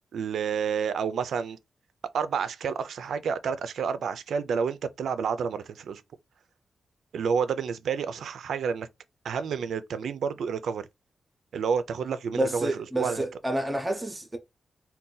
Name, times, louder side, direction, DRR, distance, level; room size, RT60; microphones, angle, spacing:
voice 1, 0.1-1.6 2.1-6.0 7.1-8.9 9.2-10.9 11.5-13.2, right 6 dB, 80° right, 0.3 m, -29 dB
voice 2, 12.3-14.4, right 1 dB, 15° right, 0.6 m, -29 dB
2.6 x 2.2 x 3.8 m
wide cardioid pair, 135°, 0 cm